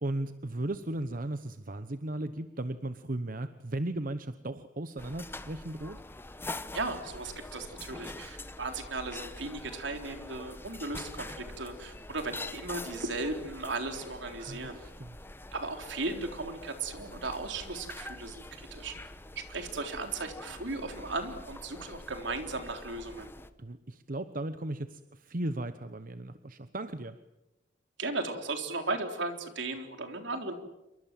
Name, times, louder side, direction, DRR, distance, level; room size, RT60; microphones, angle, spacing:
voice 1, 0.0-6.0 14.4-15.2 23.6-27.2, right 1 dB, 45° right, 11 dB, 1.0 m, -36 dB
sound 1, 5.0-23.5, left 2 dB, 10° left, 1.1 m, -45 dB
voice 2, 6.7-14.8 15.5-18.9 19.4-23.3 28.0-30.5, right 3 dB, 70° right, 6 dB, 3.8 m, -36 dB
27.5 x 24.0 x 7.6 m, 0.97 s
head